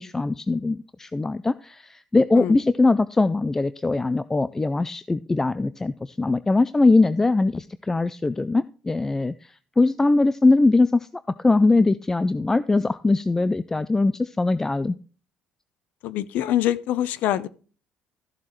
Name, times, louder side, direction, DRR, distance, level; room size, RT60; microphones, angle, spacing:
voice 1, 0.0-11.1 11.4-15.0, left 3 dB, 15° left, 0.3 m, -21 dB
voice 2, 16.0-17.5, left 12 dB, 80° left, 0.6 m, -24 dB
13.5 x 7.3 x 3.1 m
cardioid pair, 110°, 3 cm